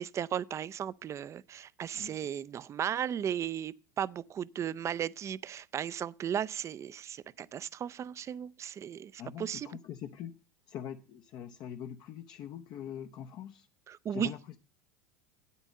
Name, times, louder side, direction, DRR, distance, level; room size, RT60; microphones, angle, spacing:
voice 1, 0.0-9.7 13.9-14.3, right 9 dB, 30° right, 0.4 m, -35 dB
voice 2, 9.2-10.3 10.7-13.7 14.1-14.6, left 9 dB, 45° left, 0.7 m, -43 dB
9.0 x 8.4 x 5.3 m
hypercardioid pair, 85°, 10 cm